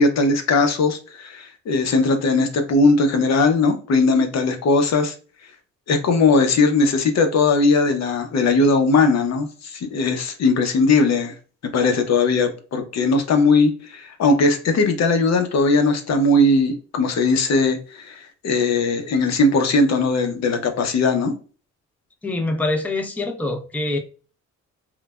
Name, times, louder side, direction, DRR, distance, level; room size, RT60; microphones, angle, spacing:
voice 1, 0.0-5.1 5.9-11.3 11.7-21.3, left 3 dB, 60° left, 0.7 m, -19 dB
voice 2, 22.2-24.0, left 2 dB, 5° left, 0.5 m, -24 dB
3.2 x 2.1 x 2.2 m
cardioid pair, 90°, 30 cm